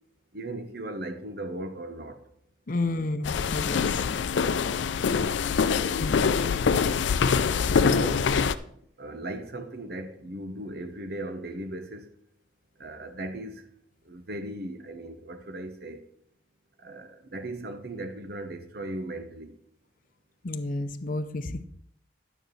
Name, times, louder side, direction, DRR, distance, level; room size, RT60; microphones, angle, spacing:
voice 1, 0.3-2.2 5.6-6.0 7.6-8.3 8.6-12.1 12.8-13.6 14.0-16.0 16.8-19.6, right 1 dB, 60° right, 1.0 m, -37 dB
voice 2, 2.7-4.0 6.0-6.2 20.4-21.6, left 2 dB, 50° left, 0.6 m, -31 dB
sound 1, 3.2-8.5, left 6 dB, 85° left, 0.4 m, -24 dB
11.0 x 9.2 x 3.1 m
head